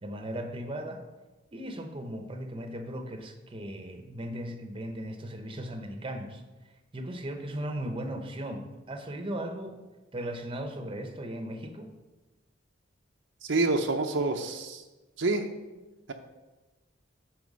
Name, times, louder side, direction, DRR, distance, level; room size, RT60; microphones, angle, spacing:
voice 1, 0.0-1.0 1.5-6.4 6.9-9.8 10.1-11.9, right 1 dB, 25° right, 5 dB, 0.9 m, -37 dB
voice 2, 13.4-14.8 15.2-15.5, right 3 dB, 65° right, 4 dB, 0.7 m, -27 dB
9.5 x 4.4 x 6.2 m, 1.1 s
head